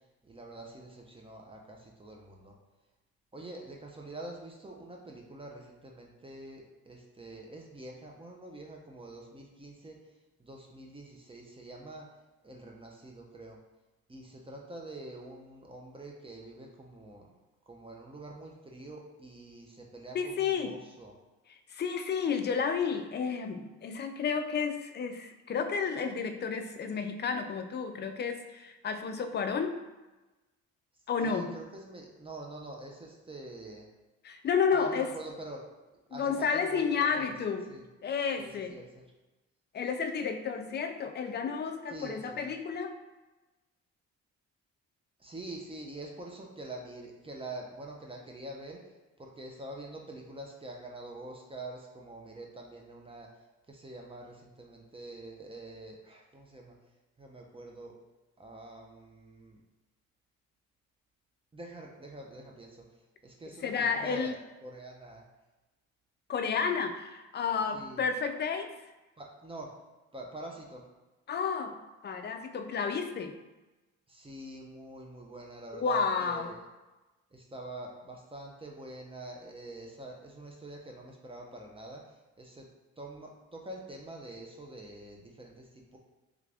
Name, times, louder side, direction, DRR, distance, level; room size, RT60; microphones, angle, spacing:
voice 1, 0.2-2.6 3.3-10.0 10.4-12.1 12.4-13.6 14.1-17.3 17.7-21.1 31.2-33.9 34.7-35.6 36.1-37.3 37.7-37.8 38.4-39.0 41.9-42.4 45.2-48.8 49.2-53.3 53.7-56.8 57.2-58.0 58.4-59.6 61.5-62.9 63.2-64.4 64.6-65.2 67.7-68.1 69.2-69.7 70.1-70.9 74.1-76.6 77.3-82.7 83.0-86.0, right 2 dB, 20° right, -1 dB, 0.6 m, -45 dB
voice 2, 20.1-20.8 21.5-29.8 31.1-31.5 34.2-35.1 36.1-37.7 38.0-38.8 39.7-43.0 63.6-64.4 66.3-68.8 71.3-73.4 75.7-76.5, left 6 dB, 35° left, 7 dB, 0.4 m, -31 dB
3.5 x 2.5 x 3.3 m, 1.1 s
cardioid pair, 90°, 30 cm